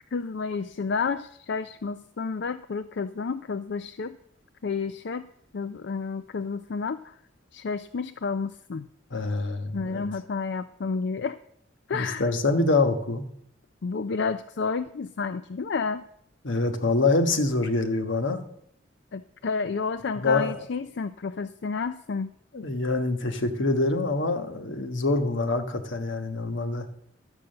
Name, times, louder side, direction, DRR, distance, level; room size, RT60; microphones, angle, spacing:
voice 1, 0.1-4.2 4.6-5.3 5.5-7.1 7.5-8.9 9.7-11.4 11.9-12.3 13.8-16.0 19.1-22.3, left 5 dB, 65° left, 11 dB, 0.4 m, -30 dB
voice 2, 9.1-10.1 11.9-13.2 16.4-18.4 20.2-20.5 22.5-26.9, left 3 dB, 80° left, 7 dB, 1.3 m, -25 dB
12.5 x 8.2 x 6.6 m, 0.72 s
head